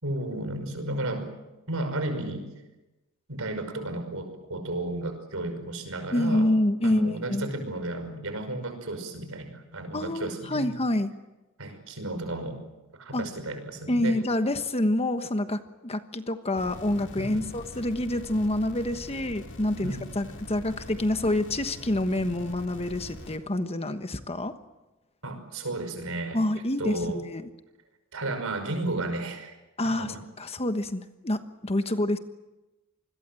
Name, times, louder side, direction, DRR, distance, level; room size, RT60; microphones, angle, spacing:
voice 1, 0.0-1.3 1.7-2.5 3.3-6.5 6.8-10.7 11.6-12.6 13.0-14.2 17.2-17.5 19.8-20.0 25.2-26.4 26.8-27.2 28.1-29.5 29.8-30.2, right 2 dB, 70° right, 8 dB, 5.6 m, -33 dB
voice 2, 6.1-7.5 9.9-11.1 13.1-13.3 13.9-24.5 26.3-27.5 29.8-32.2, left 1 dB, 30° left, 9 dB, 1.3 m, -27 dB
sound 1, 16.5-23.4, left 1 dB, 55° left, 3.5 m, -44 dB
27.5 x 21.0 x 7.8 m, 1.0 s
head